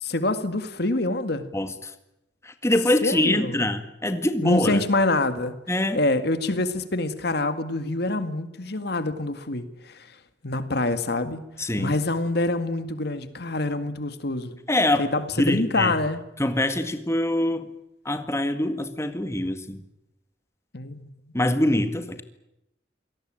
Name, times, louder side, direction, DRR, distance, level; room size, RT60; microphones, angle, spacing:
voice 1, 0.0-1.5 3.0-3.7 4.4-5.6 5.9-10.2 10.4-11.4 11.8-14.6 15.0-16.2 20.7-21.1, left 2 dB, 65° left, 10 dB, 2.0 m, -26 dB
voice 2, 1.5-1.9 2.4-4.8 5.7-6.0 11.6-11.9 14.7-15.1 15.4-15.9 16.4-17.7 18.1-19.8 21.3-22.2, left 1 dB, 15° left, 8 dB, 1.9 m, -24 dB
27.0 x 18.5 x 9.0 m, 0.86 s
head